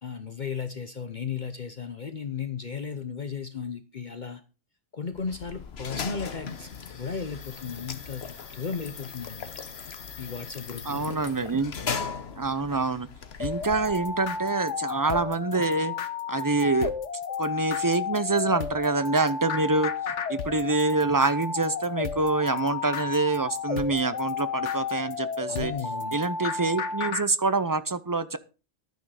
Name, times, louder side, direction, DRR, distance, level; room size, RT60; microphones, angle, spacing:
voice 1, 0.0-4.4 4.9-8.2 8.5-9.5 10.2-11.1 25.5-26.2, left 6 dB, 45° left, 10 dB, 0.9 m, -35 dB
sound 1, 5.1-14.4, left 6 dB, 60° left, 1.3 m, -38 dB
voice 2, 10.9-11.7 12.4-13.1 13.4-15.9 16.3-16.9 17.4-19.9 20.3-25.7 26.1-28.4, right 3 dB, 25° right, 13 dB, 0.5 m, -26 dB
sound 2, 13.4-27.2, left 5 dB, 90° left, 1.4 m, -32 dB
11.5 x 9.3 x 4.9 m, 0.32 s
omnidirectional pair, 1.2 m